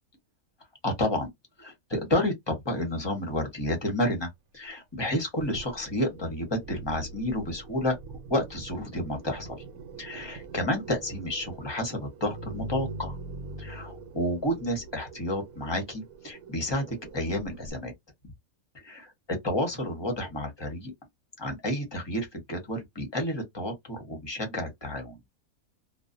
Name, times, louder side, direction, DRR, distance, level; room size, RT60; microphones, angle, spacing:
voice 1, 0.8-1.3 1.6-8.0 8.3-9.6 10.0-13.2 13.6-17.9 18.7-20.9 21.4-25.2, left 1 dB, 25° left, 0.7 m, -30 dB
sound 1, 5.4-17.7, right 2 dB, 75° right, 1.0 m, -43 dB
2.4 x 2.2 x 2.4 m
omnidirectional pair, 1.5 m